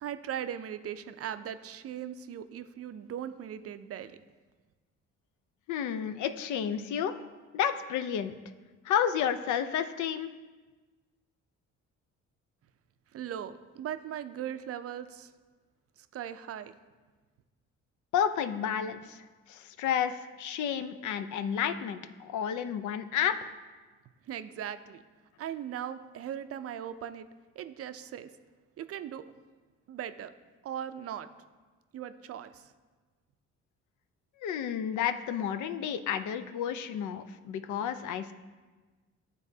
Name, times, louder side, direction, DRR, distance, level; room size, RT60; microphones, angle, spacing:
voice 1, 0.0-4.2 13.1-15.3 16.0-16.7 24.3-25.0 25.4-27.3 27.6-28.3 28.8-29.2 29.9-30.3 30.6-31.3 31.9-32.7, right 9 dB, 50° right, 11 dB, 0.4 m, -39 dB
voice 2, 5.7-7.1 7.5-8.4 8.8-10.3 18.1-19.2 19.5-23.4 34.4-38.3, left 8 dB, 75° left, 11 dB, 0.5 m, -31 dB
11.5 x 4.0 x 2.7 m, 1.3 s
cardioid pair, 90°, 30 cm